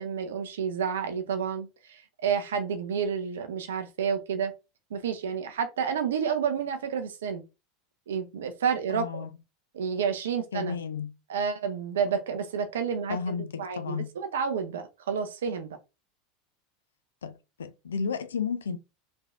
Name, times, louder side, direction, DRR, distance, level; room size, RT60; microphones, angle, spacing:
voice 1, 0.0-4.5 4.9-7.4 8.1-9.3 9.7-10.8 11.3-15.8, right 7 dB, 75° right, 0.4 m, -30 dB
voice 2, 8.9-9.3 10.5-11.1 13.1-14.1 17.2-17.3 17.6-18.8, left 6 dB, 80° left, 0.3 m, -32 dB
3.1 x 2.6 x 2.3 m
hypercardioid pair, 85°, 0 cm